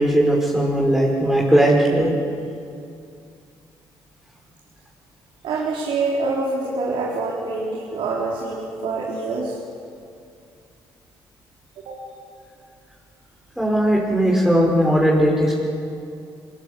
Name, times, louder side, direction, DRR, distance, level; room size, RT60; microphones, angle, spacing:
voice 1, 0.0-2.1 13.6-15.5, right 1 dB, 5° right, -3 dB, 5.6 m, -18 dB
voice 2, 5.4-9.5 11.8-12.0, right 3 dB, 75° right, -5 dB, 4.2 m, -25 dB
23.5 x 22.0 x 8.5 m, 2.4 s
supercardioid pair, 75°, 9 cm